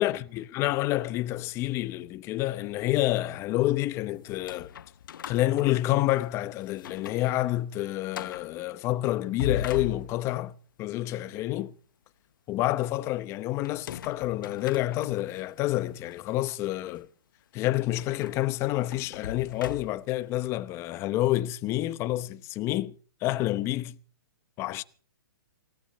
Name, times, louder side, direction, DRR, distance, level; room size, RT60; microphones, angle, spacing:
voice 1, 0.0-4.7 5.3-11.7 12.5-17.1 17.5-22.9 23.2-24.0 24.6-24.8, left 16 dB, 25° left, 0.9 m, -28 dB
sound 1, 4.2-6.3 6.7-7.3 7.6-7.7 8.1-8.5 9.2-10.5 13.6-15.4 16.1-16.2 18.0-20.2, left 8 dB, 65° left, 0.9 m, -39 dB
19.5 x 17.0 x 4.2 m
hypercardioid pair, 150°, 12 cm